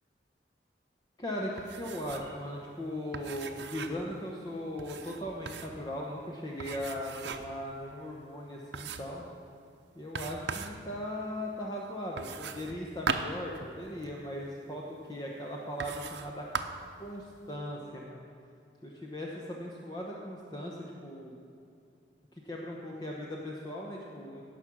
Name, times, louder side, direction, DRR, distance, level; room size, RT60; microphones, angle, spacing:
voice 1, 1.2-9.3 9.9-16.5 17.0-18.3 18.8-21.4 22.4-24.4, equal, 25° left, -2 dB, 0.9 m, -38 dB
sound 1, 1.6-2.4 2.6-2.7 3.1-4.1 4.8-5.8 6.6-7.6 8.1-8.2 8.7-9.2 10.1-10.8 12.2-14.2 15.0-15.1 15.8-16.3 16.5-16.9, right 5 dB, 75° right, 0.7 m, -38 dB
17.0 x 6.1 x 6.2 m, 2.5 s
head